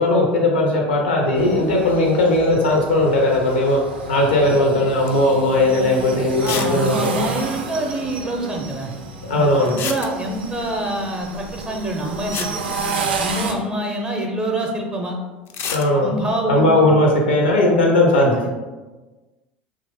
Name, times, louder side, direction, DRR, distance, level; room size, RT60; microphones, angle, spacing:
voice 1, 0.0-3.8 4.1-7.2 9.3-9.7 15.7-16.1 16.5-18.5, left 1 dB, 90° left, 0 dB, 0.7 m, -17 dB
sound 1, 1.3-13.5, right 4 dB, 85° right, 0.4 m, -31 dB
sound 2, 5.1-5.4 5.7-5.8 6.4-6.8 7.0-7.1 7.3-7.4 9.7-10.5 11.9-12.0 12.3-13.5 15.5-15.9, left 6 dB, 50° left, 0.4 m, -29 dB
voice 2, 6.4-8.9 9.3-12.6 13.2-15.2 15.9-16.8 17.5-17.6 18.2-18.5, right 1 dB, 20° right, 1 dB, 0.5 m, -26 dB
2.9 x 2.4 x 3.4 m, 1.2 s
hypercardioid pair, 80°, 6 cm